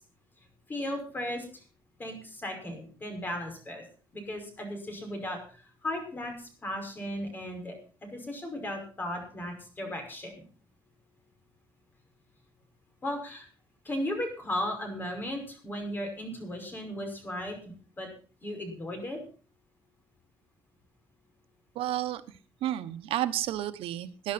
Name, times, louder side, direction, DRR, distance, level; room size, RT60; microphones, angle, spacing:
voice 1, 0.7-1.5 2.0-3.8 4.1-7.8 8.1-10.4 13.0-13.5 13.8-18.1 18.4-19.2, left 1 dB, 20° left, 4 dB, 5.5 m, -36 dB
voice 2, 21.7-22.2 22.6-24.3, right 13 dB, 90° right, 12 dB, 1.1 m, -31 dB
20.0 x 11.0 x 4.2 m, 0.39 s
cardioid pair, 165°, 9 cm